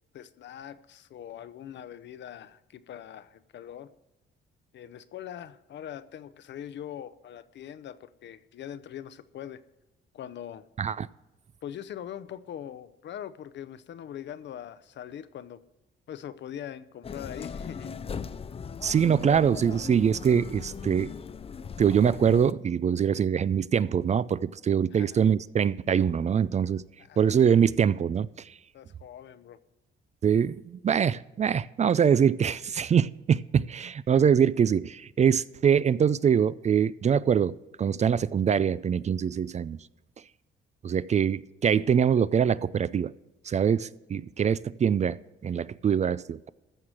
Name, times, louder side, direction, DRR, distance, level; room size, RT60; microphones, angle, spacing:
voice 1, 0.1-3.9 4.7-9.6 10.1-10.6 11.6-15.6 16.1-17.9 24.9-25.2 27.0-27.3 28.7-29.6, left 10 dB, 65° left, 0.7 m, -42 dB
street sounds plus music, 17.0-22.5, left 6 dB, 30° left, 0.5 m, -38 dB
voice 2, 18.8-21.1 21.8-26.8 27.2-28.3 30.2-39.8 40.8-43.1 43.5-46.5, right 7 dB, 35° right, 0.4 m, -24 dB
14.5 x 4.8 x 8.9 m
cardioid pair, 90°, 20 cm